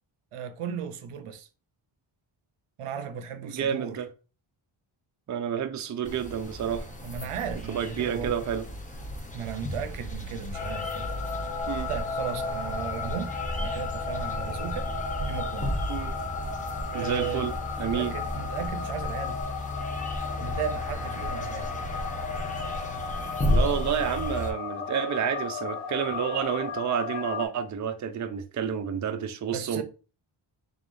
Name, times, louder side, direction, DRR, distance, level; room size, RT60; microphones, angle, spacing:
voice 1, 0.3-1.5 2.8-4.0 7.0-8.3 9.3-11.1 11.9-13.3 13.6-14.9 15.3-15.8 16.9-17.5 17.8-19.4 20.4-21.7 29.5-29.8, right 7 dB, 90° right, 0.6 m, -35 dB
voice 2, 3.4-4.1 5.3-6.9 7.7-8.6 11.7-11.9 15.9-16.2 16.9-18.1 23.5-29.8, right 8 dB, 40° right, 0.4 m, -30 dB
sound 1, 6.1-24.5, left 1 dB, 15° left, 0.7 m, -34 dB
sound 2, 10.5-27.5, left 5 dB, 90° left, 0.8 m, -35 dB
3.7 x 3.5 x 2.5 m
wide cardioid pair, 110°, 50 cm